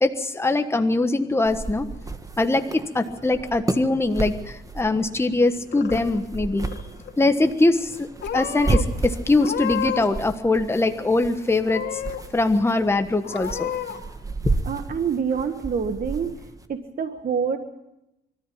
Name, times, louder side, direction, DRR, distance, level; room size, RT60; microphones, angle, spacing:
voice 1, 0.0-1.9 2.4-6.7 7.2-8.1 8.3-12.0 12.3-13.7, left 2 dB, 10° left, 7 dB, 1.3 m, -22 dB
sound 1, 1.4-16.7, right 3 dB, 15° right, 1.5 m, -32 dB
Purr / Meow, 5.4-6.3 6.6-7.1 7.8-8.8 9.3-10.2 10.5-11.2 11.6-12.2 12.7-12.8 13.2-14.0, left 9 dB, 60° left, 2.5 m, -31 dB
voice 2, 14.6-16.3 16.7-17.6, right 6 dB, 45° right, 8 dB, 1.5 m, -26 dB
24.0 x 13.5 x 8.6 m, 0.89 s
cardioid pair, 90°, 20 cm